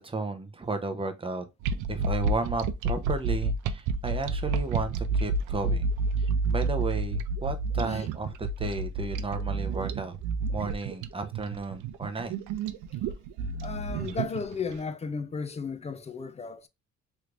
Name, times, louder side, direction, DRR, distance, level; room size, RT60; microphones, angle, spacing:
voice 1, 0.0-1.4 1.9-5.9 6.2-10.2 10.5-12.4, right 3 dB, 20° right, 0.6 m, -33 dB
sound 1, 1.6-14.7, right 3 dB, 80° right, 0.5 m, -30 dB
voice 2, 13.6-16.7, left 5 dB, 25° left, 0.4 m, -34 dB
3.2 x 3.1 x 2.4 m
cardioid pair, 90°, 30 cm